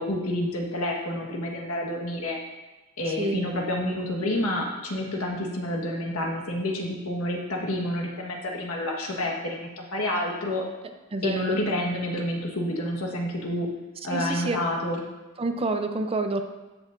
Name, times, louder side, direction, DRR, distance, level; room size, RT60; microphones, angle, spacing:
voice 1, 0.0-2.4 3.0-10.6 11.2-13.7 14.0-15.0, left 1 dB, 75° left, 0 dB, 1.4 m, -29 dB
voice 2, 11.1-11.6 14.1-14.6 15.4-16.4, right 2 dB, 25° right, 7 dB, 0.5 m, -28 dB
13.0 x 6.4 x 2.6 m, 1.1 s
head